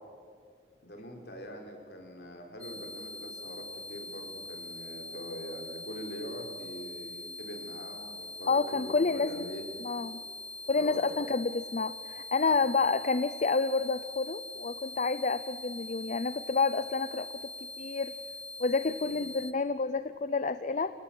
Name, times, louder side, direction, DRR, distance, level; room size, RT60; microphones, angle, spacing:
voice 1, 0.8-9.6 10.8-11.2 12.5-12.6 19.0-19.3, equal, 65° left, 2 dB, 4.4 m, -43 dB
sound 1, 2.6-19.5, left 2 dB, 5° left, 1.0 m, -43 dB
voice 2, 8.5-9.4 9.8-10.2 10.7-17.3 17.8-18.1 18.6-20.9, left 4 dB, 45° left, 13 dB, 0.6 m, -29 dB
26.5 x 18.0 x 9.3 m, 2.2 s
head